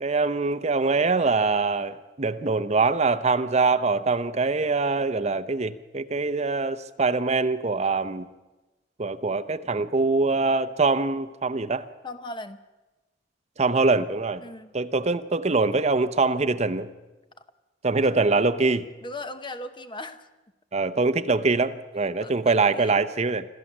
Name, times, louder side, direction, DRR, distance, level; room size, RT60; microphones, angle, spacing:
voice 1, 0.0-8.3 9.0-11.9 13.6-14.4 14.7-16.9 17.8-18.9 20.7-23.4, right 3 dB, 40° right, 11 dB, 0.8 m, -23 dB
voice 2, 12.0-12.6 14.4-14.7 17.4-17.5 18.0-18.2 19.0-20.3 22.2-23.0, left 2 dB, 25° left, 9 dB, 1.0 m, -38 dB
27.0 x 13.5 x 7.4 m, 1.1 s
head